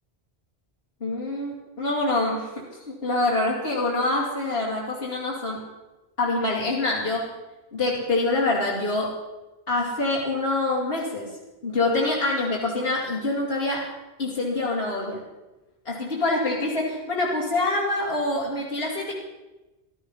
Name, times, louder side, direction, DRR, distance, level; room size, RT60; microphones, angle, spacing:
voice 1, 1.0-5.6 6.2-7.3 7.7-9.1 9.7-11.3 11.6-13.9 14.2-15.2 15.8-19.1, left 2 dB, 65° left, -5 dB, 3.0 m, -25 dB
15.0 x 13.5 x 5.6 m, 1.1 s
omnidirectional pair, 1.1 m